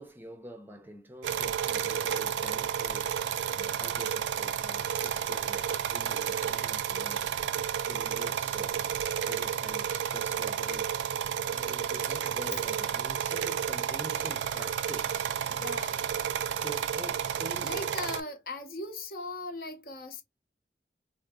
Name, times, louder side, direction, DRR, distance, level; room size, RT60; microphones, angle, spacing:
voice 1, 0.0-7.3 7.8-8.9 9.2-11.0 11.5-15.3 16.5-18.1, equal, 10° right, 0.5 m, -46 dB
sound 1, 1.2-18.2, right 8 dB, 85° right, 0.4 m, -31 dB
voice 2, 15.5-16.0 17.6-20.2, left 2 dB, 55° left, 0.7 m, -38 dB
3.7 x 2.5 x 2.3 m
head